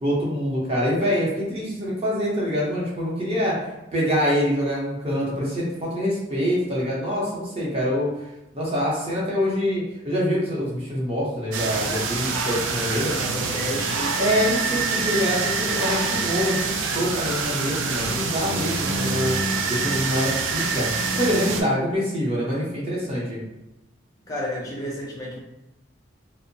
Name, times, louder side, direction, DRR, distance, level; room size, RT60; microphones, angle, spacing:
voice 1, 0.0-3.5 3.9-8.1 8.5-13.2 14.2-19.4 19.7-20.9 21.2-23.4, equal, 30° right, -5 dB, 0.7 m, -25 dB
sound 1, 11.5-21.6, right 4 dB, 80° right, 0.3 m, -26 dB
voice 2, 13.1-14.2 24.3-25.4, left 1 dB, 20° left, -3 dB, 0.5 m, -31 dB
2.6 x 2.0 x 2.6 m, 0.95 s
head